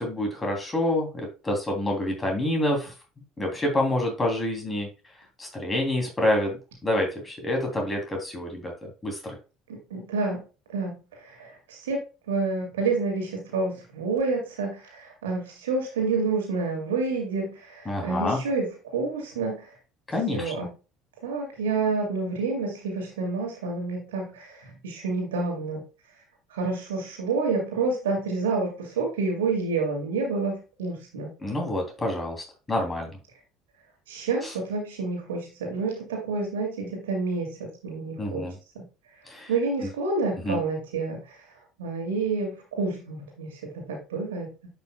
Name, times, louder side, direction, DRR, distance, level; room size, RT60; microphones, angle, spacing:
voice 1, 0.0-2.9 3.4-4.9 5.4-6.6 6.8-9.3 17.9-18.4 20.1-20.5 31.4-33.2 38.2-38.6 39.3-39.5 40.4-40.6, left 1 dB, 20° left, 1 dB, 3.2 m, -27 dB
voice 2, 9.9-10.4 10.7-12.0 12.3-19.7 20.3-20.7 21.2-25.8 26.5-31.3 34.1-38.5 38.7-38.8 39.5-41.4 41.8-44.5, right 3 dB, 75° right, 1 dB, 2.3 m, -29 dB
10.0 x 5.6 x 2.3 m, 0.31 s
figure-of-eight pair, 60°, 0 cm